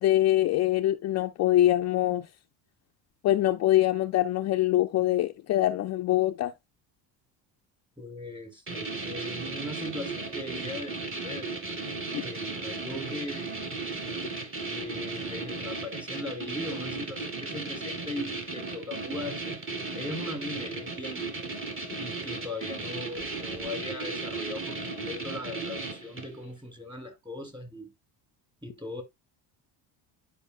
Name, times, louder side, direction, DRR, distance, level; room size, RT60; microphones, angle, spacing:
voice 1, 0.0-2.3 3.2-6.5 12.1-12.2, left 14 dB, 40° left, 0.4 m, -24 dB
voice 2, 8.0-11.5 12.2-13.6 14.6-19.6 19.9-21.3 22.0-27.9 28.6-29.0, left 2 dB, 10° right, 2.4 m, -39 dB
sound 1, 8.7-26.4, right 3 dB, 30° right, 2.2 m, -35 dB
sound 2, 23.2-23.7, right 6 dB, 45° right, 5.5 m, -51 dB
11.0 x 5.0 x 2.3 m
cardioid pair, 135°, 43 cm